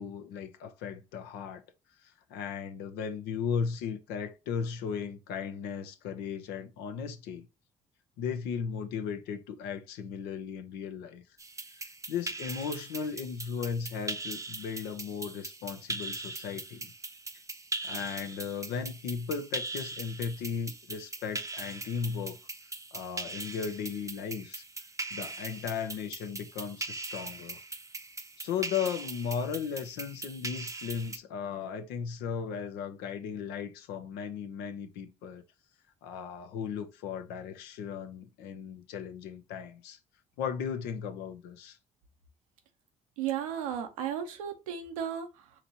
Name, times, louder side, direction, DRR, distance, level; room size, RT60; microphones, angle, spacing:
voice 1, 0.0-1.6 2.3-7.5 8.2-11.2 12.1-16.9 17.8-22.4 22.9-24.6 25.1-27.6 28.4-35.4 36.0-40.0 40.4-41.8, left 6 dB, 75° left, 0.7 m, -36 dB
sound 1, 11.4-31.2, right 3 dB, 20° right, 0.7 m, -40 dB
voice 2, 43.2-45.6, right 9 dB, 90° right, 0.8 m, -35 dB
5.0 x 3.0 x 2.8 m
hypercardioid pair, 55°, 17 cm